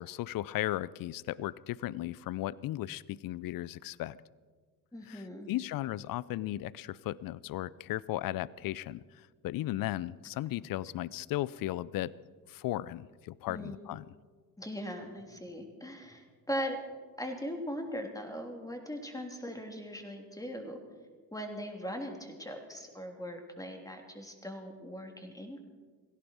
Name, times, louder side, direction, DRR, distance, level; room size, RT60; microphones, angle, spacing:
voice 1, 0.0-4.2 5.1-12.1 12.5-14.0, left 15 dB, 45° left, 22 dB, 0.6 m, -36 dB
voice 2, 4.9-5.5 13.5-13.9 14.6-16.8 17.2-20.8 21.3-25.6, equal, 5° left, 3 dB, 3.3 m, -40 dB
19.0 x 16.5 x 4.6 m, 1.5 s
hypercardioid pair, 55°, 49 cm